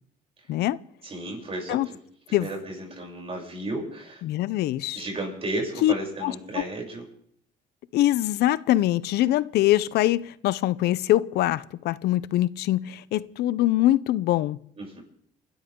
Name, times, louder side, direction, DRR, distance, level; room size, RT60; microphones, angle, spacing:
voice 1, 1.0-2.0 2.3-4.2 4.9-7.0 14.8-15.0, right 1 dB, 35° right, 7.8 m, -33 dB
voice 2, 4.2-5.0 5.8-5.9 6.2-6.3 7.9-14.6, left 14 dB, 75° left, 0.7 m, -23 dB
28.5 x 13.0 x 3.8 m
cardioid pair, 110°, 17 cm